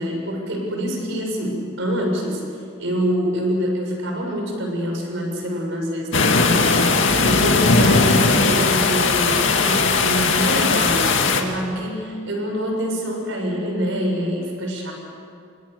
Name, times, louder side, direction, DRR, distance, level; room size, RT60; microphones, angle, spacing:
voice 1, 0.0-2.4 2.8-14.9, equal, 65° right, 1 dB, 6.8 m, -25 dB
sound 1, 6.1-11.4, left 4 dB, 65° left, 2.4 m, -18 dB
29.5 x 24.5 x 6.9 m, 2.4 s
head